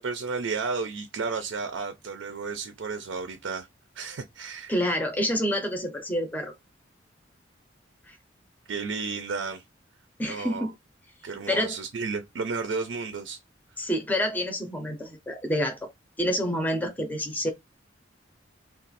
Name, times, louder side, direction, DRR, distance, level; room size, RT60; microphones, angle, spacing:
voice 1, 0.0-3.7 4.0-4.8 8.7-9.6 10.2-10.7 11.2-13.4, right 4 dB, 75° right, 0.5 m, -32 dB
voice 2, 4.7-6.5 8.1-8.2 10.2-10.7 11.5-11.7 13.8-15.9 16.2-17.5, equal, 10° left, 0.6 m, -28 dB
2.5 x 2.4 x 4.0 m
head